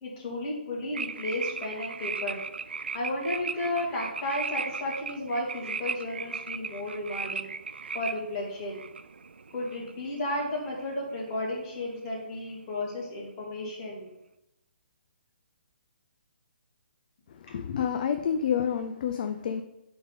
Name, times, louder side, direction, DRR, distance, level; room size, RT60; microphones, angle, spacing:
voice 1, 0.0-2.4 2.9-7.5 7.9-8.8 9.5-14.1, left 1 dB, 35° left, -3 dB, 2.1 m, -33 dB
sound 1, 0.9-11.2 11.4-11.8, right 5 dB, 80° right, 0.4 m, -37 dB
voice 2, 17.3-19.6, left 8 dB, 50° left, 7 dB, 0.4 m, -29 dB
4.9 x 4.0 x 5.3 m, 0.90 s
hypercardioid pair, 145°, 6 cm